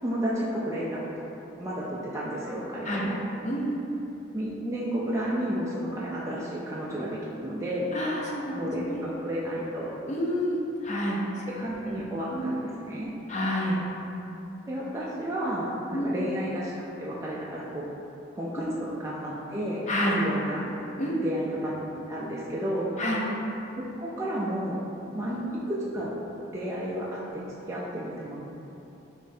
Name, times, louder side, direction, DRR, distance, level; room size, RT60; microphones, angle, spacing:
voice 1, 0.0-1.1 1.6-3.2 4.3-7.9 8.5-10.0 11.6-13.1 14.7-16.7 17.0-17.8 18.4-18.6 19.0-19.8 20.2-20.7 21.2-21.8 22.1-22.9 23.8-24.8 25.1-25.4 25.7-26.1 26.5-27.4 27.7-28.4, right 1 dB, 15° right, -7 dB, 0.4 m, -32 dB
voice 2, 3.4-4.0 7.9-9.0 10.1-11.4 11.8-12.0 12.3-12.5 13.3-13.8 15.9-16.2 18.6-18.7 19.9-20.1 21.0-21.2 23.0-23.2 25.3-25.5, equal, 35° left, -3 dB, 0.6 m, -29 dB
5.0 x 3.2 x 2.7 m, 3.0 s
head